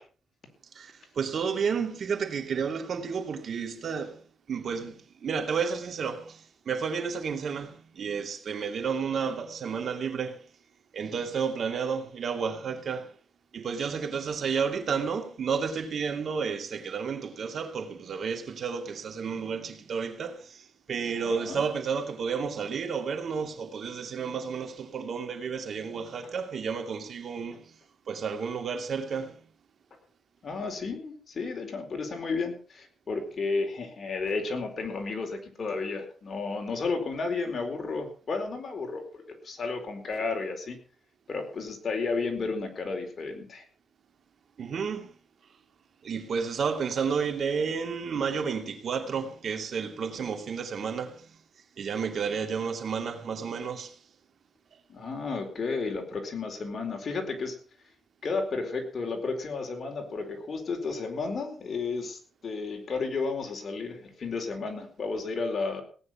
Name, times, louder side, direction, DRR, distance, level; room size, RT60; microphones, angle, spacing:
voice 1, 0.7-4.2 4.5-10.4 10.9-13.1 13.5-20.6 20.9-27.7 28.1-29.4 44.6-45.1 46.0-51.3 51.8-53.9, right 6 dB, 60° right, 2.7 m, -31 dB
voice 2, 21.2-21.6 30.4-40.8 41.3-43.6 54.9-57.6 58.2-65.8, left 4 dB, 50° left, 4.4 m, -32 dB
18.0 x 9.8 x 5.8 m
cardioid pair, 100°, 0 cm